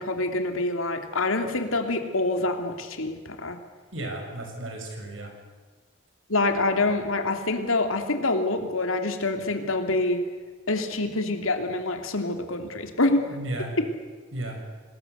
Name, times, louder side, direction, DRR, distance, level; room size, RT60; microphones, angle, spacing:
voice 1, 0.0-3.6 6.3-10.2 10.7-13.3, left 2 dB, 90° left, 6 dB, 2.9 m, -26 dB
voice 2, 3.9-5.3 13.3-13.7 14.3-14.6, right 1 dB, 70° right, 3 dB, 6.5 m, -34 dB
26.5 x 20.0 x 8.1 m, 1.4 s
head